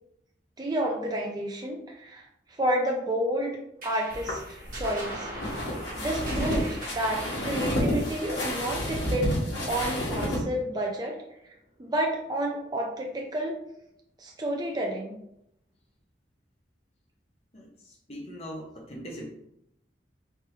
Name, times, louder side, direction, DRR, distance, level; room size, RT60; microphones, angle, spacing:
voice 1, 0.6-3.5 3.8-5.3 6.0-11.2 11.8-13.6 14.2-15.1, right 1 dB, 20° right, 0 dB, 0.4 m, -30 dB
sound 1, 3.8-10.6, right 1 dB, 45° right, 1.2 m, -42 dB
sound 2, 4.1-10.4, left 1 dB, 75° left, 1.3 m, -30 dB
voice 2, 17.5-19.3, equal, 35° left, 0 dB, 0.7 m, -41 dB
3.4 x 3.3 x 3.0 m, 0.77 s
head